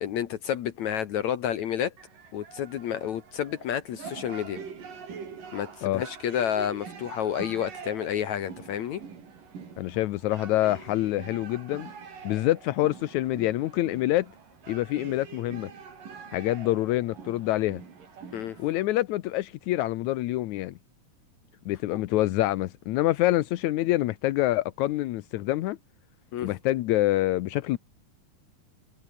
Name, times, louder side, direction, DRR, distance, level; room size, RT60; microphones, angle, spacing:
voice 1, 0.0-1.9 2.3-4.6 5.5-9.0 18.3-18.6 21.9-22.0 26.3-26.5, left 9 dB, 65° left, 2.0 m, -30 dB
sound 1, 2.0-18.9, right 6 dB, 60° right, 5.5 m, -45 dB
voice 2, 9.8-11.9 12.2-14.3 14.7-15.7 16.3-17.8 18.6-20.8 21.7-25.8 26.4-27.8, left 16 dB, 80° left, 1.7 m, -26 dB
omnidirectional pair, 4.4 m